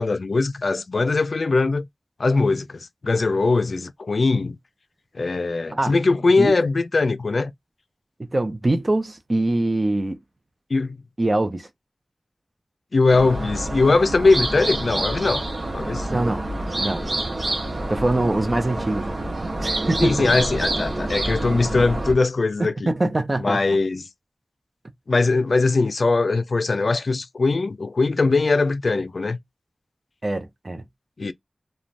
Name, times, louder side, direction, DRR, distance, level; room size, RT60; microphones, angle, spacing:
voice 1, 0.0-1.9 2.2-4.6 5.1-7.5 10.7-11.0 12.9-15.4 15.7-16.1 20.0-22.9 23.4-24.0 25.1-29.4 31.2-31.3, left 3 dB, 80° left, 0.3 m, -21 dB
voice 2, 8.2-10.2 11.2-11.7 16.1-16.4 16.8-17.1 17.9-19.1 19.6-20.3 22.6-23.6 30.2-30.9, right 2 dB, 40° right, 0.6 m, -23 dB
sound 1, 13.1-22.1, right 1 dB, 75° right, 0.7 m, -27 dB
2.5 x 2.2 x 3.1 m
wide cardioid pair, 60°, 0 cm